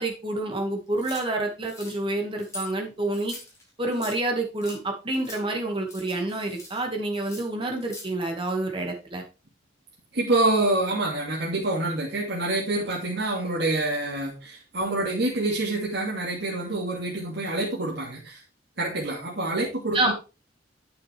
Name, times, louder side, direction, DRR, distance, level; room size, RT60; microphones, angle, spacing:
voice 1, 0.0-3.3 3.8-9.2 19.9-20.1, right 2 dB, 30° right, 2 dB, 2.2 m, -28 dB
sound 1, 1.0-1.2 1.6-2.0 2.4-2.7 3.1-4.2 4.6-4.8 5.1-5.4 5.8-6.8 7.1-8.1, left 2 dB, 15° left, 3.6 m, -43 dB
voice 2, 10.1-18.4 18.8-20.1, right 2 dB, 65° right, -3 dB, 2.6 m, -27 dB
9.1 x 6.5 x 3.5 m, 0.31 s
head